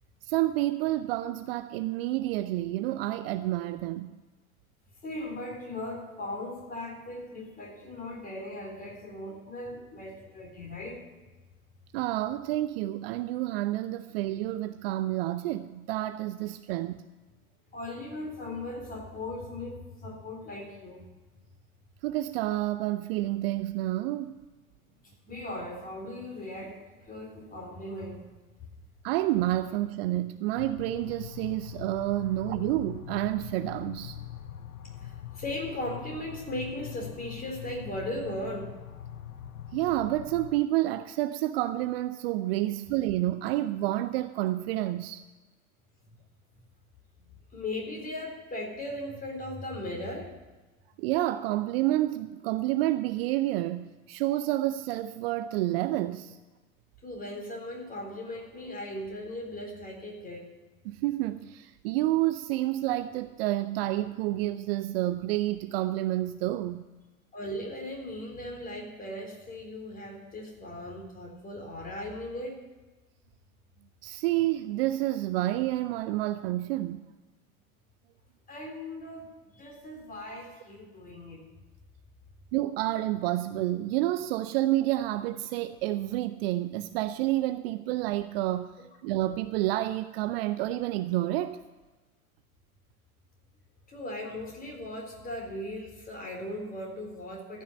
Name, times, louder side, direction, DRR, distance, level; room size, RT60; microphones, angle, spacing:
voice 1, 0.2-4.1 11.9-17.1 22.0-24.4 29.0-34.2 39.7-45.2 51.0-56.4 60.9-66.9 74.0-77.0 82.5-91.6, right 15 dB, 45° right, 0.6 m, -29 dB
voice 2, 5.0-11.0 17.7-21.1 25.0-28.3 28.6-28.7 35.0-38.8 47.5-50.3 57.0-60.5 67.3-72.6 78.5-81.4 93.9-97.6, left 1 dB, 20° left, 3.9 m, -38 dB
sound 1, 30.6-40.6, left 10 dB, 80° left, 0.8 m, -42 dB
14.0 x 6.4 x 9.2 m
figure-of-eight pair, 85°, 43 cm